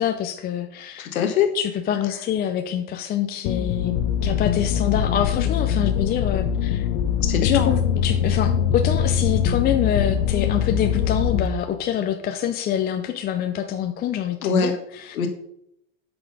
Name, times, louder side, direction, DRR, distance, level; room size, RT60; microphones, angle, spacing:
voice 1, 0.0-1.1 1.5-3.9 4.2-6.9 7.4-15.2, left 9 dB, 25° left, 6 dB, 0.5 m, -26 dB
voice 2, 1.0-1.5 7.2-7.7 14.4-14.7 15.1-15.3, left 7 dB, 90° left, 5 dB, 1.3 m, -22 dB
sound 1, 3.5-11.5, left 8 dB, 55° left, 1.0 m, -22 dB
8.2 x 4.9 x 5.3 m, 0.76 s
hypercardioid pair, 120°, 41 cm